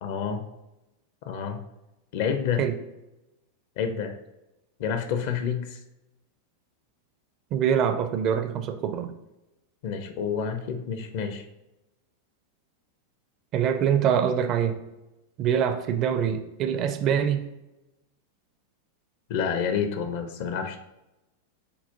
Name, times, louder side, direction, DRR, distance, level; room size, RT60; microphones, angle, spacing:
voice 1, 0.0-0.4 1.3-1.6 2.1-2.6 3.8-4.2 4.8-5.8 9.8-11.4 19.3-20.8, left 7 dB, 50° left, 7 dB, 0.5 m, -28 dB
voice 2, 7.5-9.1 13.5-14.8 15.4-17.4, right 8 dB, 35° right, 9 dB, 0.4 m, -24 dB
6.7 x 2.4 x 2.7 m, 0.95 s
figure-of-eight pair, 90°, 0 cm